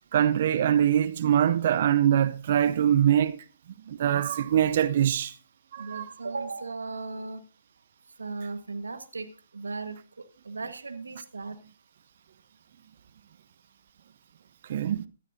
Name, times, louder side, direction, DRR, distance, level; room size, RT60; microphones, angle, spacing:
voice 1, 0.1-3.4 3.9-5.3 5.7-6.1 14.7-15.0, right 10 dB, 55° right, 0.6 m, -23 dB
voice 2, 5.8-7.4 8.2-9.3 9.5-11.6, right 3 dB, 90° right, 1.4 m, -36 dB
17.0 x 13.0 x 2.7 m
hypercardioid pair, 140°, 0 cm